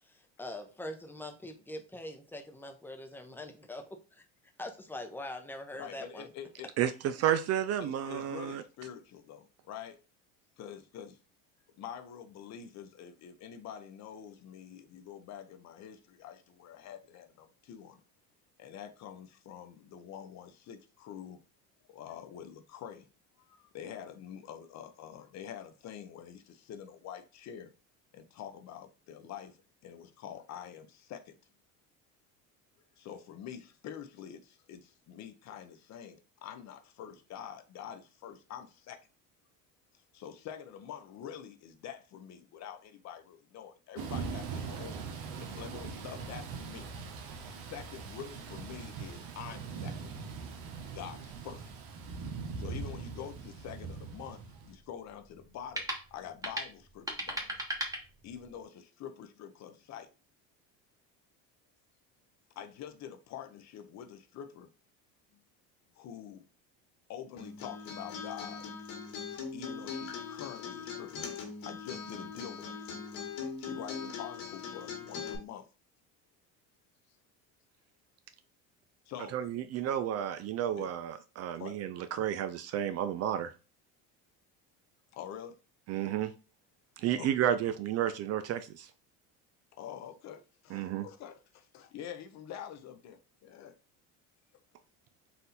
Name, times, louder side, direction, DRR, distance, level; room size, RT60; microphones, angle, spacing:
voice 1, 0.0-4.2 4.6-6.3, left 1 dB, 5° left, 0.7 m, -43 dB
voice 2, 5.7-6.7 7.8-10.0 10.6-11.2 11.8-18.0 18.6-21.4 21.9-23.1 23.4-27.7 28.1-31.3 33.0-39.1 39.9-46.9 47.5-50.0 50.9-51.7 52.6-57.6 58.2-60.1 62.6-64.7 65.3-65.4 66.0-66.4 67.1-68.7 69.5-71.1 71.6-73.1 73.6-75.7 79.1-79.4 80.7-80.9 81.6-81.7 85.1-85.6 87.1-87.5 89.8-93.8, left 9 dB, 50° left, 0.7 m, -46 dB
voice 3, 6.8-8.6 79.3-83.5 85.9-86.3 87.0-88.9 90.7-91.1, right 10 dB, 45° right, 0.4 m, -31 dB
Thunder / Rain, 44.0-54.7, right 5 dB, 75° right, 1.0 m, -41 dB
sound 1, 53.3-58.6, right 1 dB, 10° right, 1.2 m, -40 dB
Acoustic guitar, 67.4-75.4, left 5 dB, 80° left, 1.6 m, -41 dB
4.1 x 2.6 x 4.1 m
supercardioid pair, 110°, 35 cm